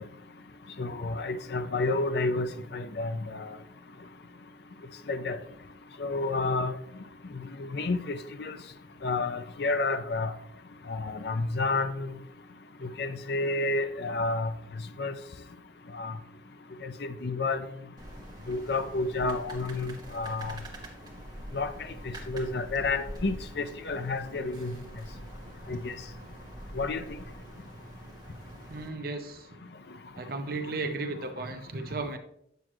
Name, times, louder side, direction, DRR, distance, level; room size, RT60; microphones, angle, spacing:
voice 1, 0.8-3.5 5.1-5.4 6.0-6.7 7.6-8.5 9.0-10.3 10.9-12.1 13.0-14.5 15.0-15.1 15.9-16.1 16.8-17.6 18.5-20.6 21.5-21.7 22.3-24.7 25.7-25.9 26.8-27.0, left 3 dB, 60° left, 10 dB, 0.6 m, -30 dB
sound 1, 18.0-28.9, right 1 dB, 20° right, 1.7 m, -45 dB
voice 2, 28.7-29.6 30.1-32.2, right 3 dB, 55° right, 6 dB, 0.8 m, -35 dB
9.2 x 7.4 x 3.1 m, 0.73 s
head